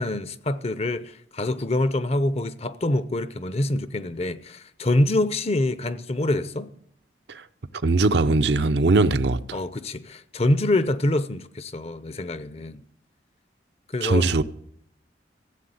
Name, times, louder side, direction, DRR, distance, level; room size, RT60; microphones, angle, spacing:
voice 1, 0.0-6.7 9.5-12.8 13.9-14.3, left 1 dB, 35° left, 0.7 m, -25 dB
voice 2, 7.8-9.6 14.0-14.4, right 3 dB, 70° right, 0.7 m, -20 dB
15.0 x 7.9 x 7.9 m
head